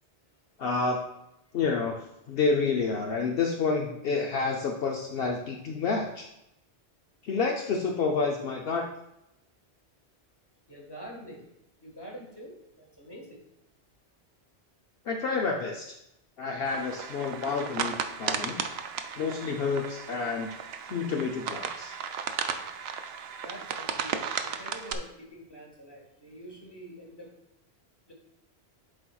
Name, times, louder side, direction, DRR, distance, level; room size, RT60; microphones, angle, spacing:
voice 1, 0.6-1.0 1.5-2.0 2.3-6.3 7.2-8.9 15.1-16.0 16.4-18.6 19.2-20.6 20.9-21.9, left 4 dB, 65° left, 0 dB, 0.8 m, -29 dB
voice 2, 10.7-11.5 11.8-13.4 23.4-27.3 28.1-28.2, equal, 20° left, -1 dB, 1.5 m, -46 dB
sound 1, 16.7-25.0, right 7 dB, 70° right, 0.8 m, -35 dB
11.0 x 4.3 x 2.3 m, 0.85 s
omnidirectional pair, 1.1 m